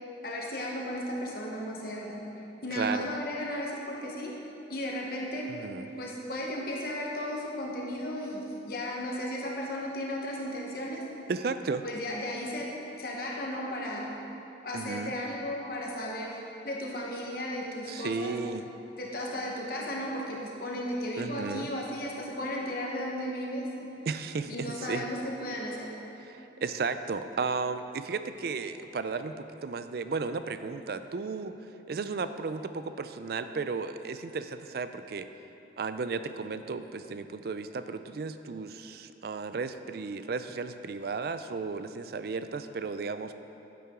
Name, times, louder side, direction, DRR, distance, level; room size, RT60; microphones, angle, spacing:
voice 1, 0.2-2.2 2.6-4.3 4.7-5.5 6.0-11.0 11.8-12.7 13.0-14.1 14.6-18.4 19.0-23.9 24.5-25.9, left 1 dB, 50° left, -2 dB, 1.1 m, -35 dB
voice 2, 2.7-3.1 5.5-5.9 11.3-11.8 14.7-15.1 17.9-18.7 21.2-21.7 24.1-25.1 26.2-31.5 31.9-35.3 35.8-43.4, right 4 dB, 55° right, 10 dB, 0.4 m, -34 dB
10.5 x 8.4 x 3.7 m, 3.0 s
head